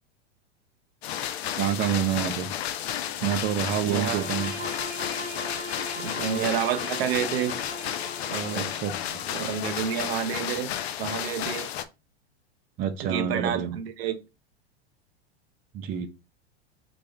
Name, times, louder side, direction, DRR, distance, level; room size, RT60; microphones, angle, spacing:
sound 1, 1.0-11.8, left 10 dB, 75° left, 0.5 m, -32 dB
voice 1, 1.6-2.5 3.2-4.5 8.5-9.2 12.8-13.8 15.7-16.1, right 9 dB, 30° right, 0.4 m, -28 dB
Bowed string instrument, 3.8-8.8, right 1 dB, 5° right, 1.2 m, -39 dB
voice 2, 3.8-4.3 5.9-7.5 8.3-8.7 9.3-10.7 11.0-11.7 13.0-14.2, right 8 dB, 65° right, 0.7 m, -29 dB
4.1 x 2.3 x 3.2 m
hypercardioid pair, 110°, 32 cm